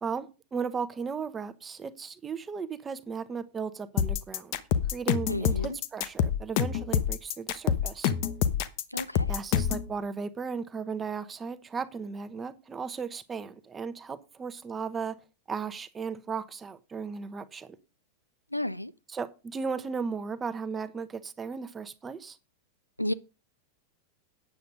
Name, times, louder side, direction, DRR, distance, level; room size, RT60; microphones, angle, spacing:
voice 1, 0.0-4.6 4.9-8.1 9.3-17.8 19.1-22.4, right 5 dB, 20° right, 1.0 m, -36 dB
sound 1, 4.0-9.9, left 9 dB, 45° left, 0.9 m, -26 dB
voice 2, 5.3-5.8 8.9-9.3 18.5-18.9 23.0-23.1, left 1 dB, 85° left, 0.5 m, -32 dB
9.4 x 8.0 x 5.2 m
figure-of-eight pair, 90°, 0 cm